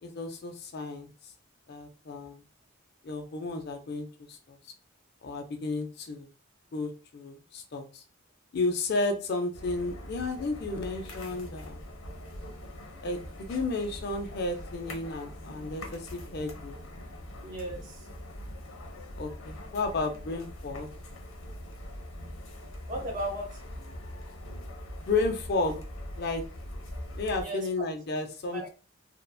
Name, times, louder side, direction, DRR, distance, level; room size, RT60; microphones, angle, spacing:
voice 1, 0.0-1.1 1.7-2.4 3.0-4.6 5.2-6.3 6.7-8.0 8.5-11.8 13.0-16.8 19.2-20.9 25.1-25.8 26.2-26.4 27.1-28.7, left 3 dB, 50° left, 4 dB, 0.4 m, -32 dB
sound 1, 9.5-27.4, left 1 dB, 80° left, 0.7 m, -42 dB
voice 2, 17.4-18.1 22.9-23.6 27.4-27.7 28.5-28.7, right 1 dB, 40° right, 0 dB, 0.7 m, -36 dB
2.7 x 2.0 x 2.2 m, 0.35 s
head